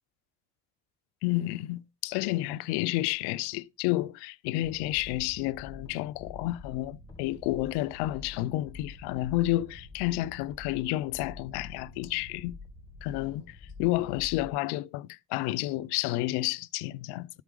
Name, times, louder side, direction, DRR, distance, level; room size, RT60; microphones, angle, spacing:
voice 1, 1.2-12.6 13.0-17.3, left 17 dB, 85° left, 0.6 m, -30 dB
sound 1, 4.6-14.5, left 3 dB, 10° left, 1.5 m, -47 dB
13.0 x 4.7 x 3.7 m
cardioid pair, 115°, 39 cm